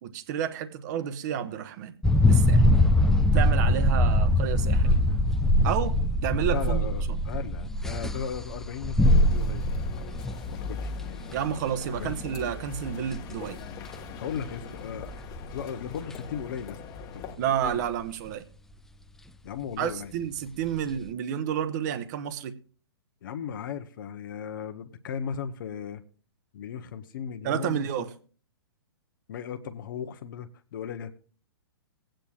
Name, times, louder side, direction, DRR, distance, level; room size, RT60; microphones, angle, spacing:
voice 1, 0.0-2.0 2.3-2.7 3.3-5.0 5.6-7.2 11.3-13.6 17.4-18.5 19.8-22.6 27.4-28.1, right 9 dB, 45° right, 1.1 m, -30 dB
sound 1, 2.0-12.6 13.1-13.5 14.0-14.1 14.5-14.6 15.0-15.5 16.1-16.2 17.6-17.8, left 1 dB, 5° left, 0.4 m, -23 dB
voice 2, 6.5-10.2 10.5-10.9 11.9-12.2 14.2-15.1 15.5-16.8 17.1-17.2 17.6-17.8 19.4-20.1 23.2-26.0 26.5-28.1 29.3-31.2, left 7 dB, 55° left, 0.9 m, -36 dB
sound 2, 9.1-17.4, left 4 dB, 30° left, 1.3 m, -40 dB
20.0 x 8.9 x 2.4 m
hypercardioid pair, 120°, 13 cm